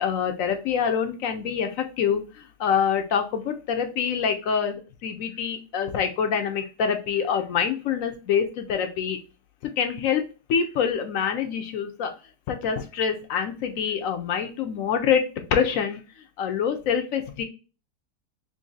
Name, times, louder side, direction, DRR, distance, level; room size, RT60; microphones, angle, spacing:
voice 1, 0.0-2.2 2.6-9.2 9.6-10.2 10.5-12.1 12.5-15.2 15.5-16.0 16.4-17.4, left 7 dB, 70° left, 6 dB, 0.9 m, -25 dB
3.1 x 2.5 x 3.8 m, 0.33 s
omnidirectional pair, 1.7 m